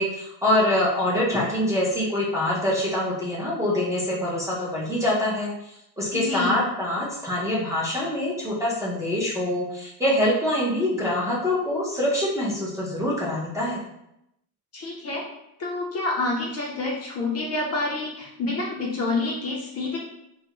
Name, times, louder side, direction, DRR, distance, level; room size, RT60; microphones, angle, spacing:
voice 1, 0.0-13.8, left 1 dB, 10° right, -6 dB, 0.5 m, -25 dB
voice 2, 6.1-6.6 14.7-15.2 15.6-20.0, left 3 dB, 40° left, -2 dB, 0.5 m, -28 dB
2.3 x 2.0 x 2.9 m, 0.83 s
cardioid pair, 125°, 40 cm